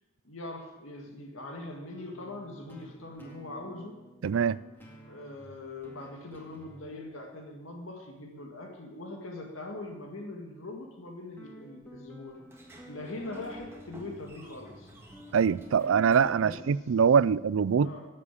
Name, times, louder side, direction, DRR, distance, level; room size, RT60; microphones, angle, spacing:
voice 1, 0.2-4.0 5.1-12.4 12.9-14.9 16.4-16.6 17.8-18.1, left 2 dB, 90° left, 2.0 m, -42 dB
sound 1, 2.0-9.2 11.4-16.7, equal, 10° left, 2.0 m, -52 dB
voice 2, 4.2-4.6 15.3-17.9, right 6 dB, 85° right, 0.4 m, -23 dB
Sliding door, 12.4-17.2, equal, 10° right, 1.7 m, -51 dB
13.5 x 7.5 x 8.4 m
head